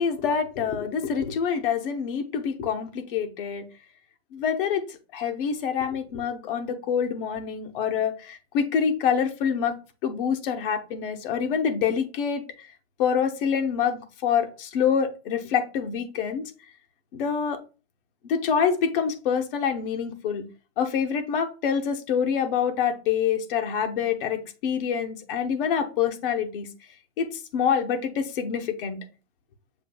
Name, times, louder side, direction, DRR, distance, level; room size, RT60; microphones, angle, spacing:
voice 1, 0.0-3.6 4.3-9.7 10.0-12.4 13.0-16.4 17.1-17.6 18.3-20.4 20.8-26.7 27.2-29.0, left 7 dB, 55° left, 6 dB, 0.8 m, -26 dB
6.9 x 2.6 x 2.3 m, 0.33 s
hypercardioid pair, 120°, 33 cm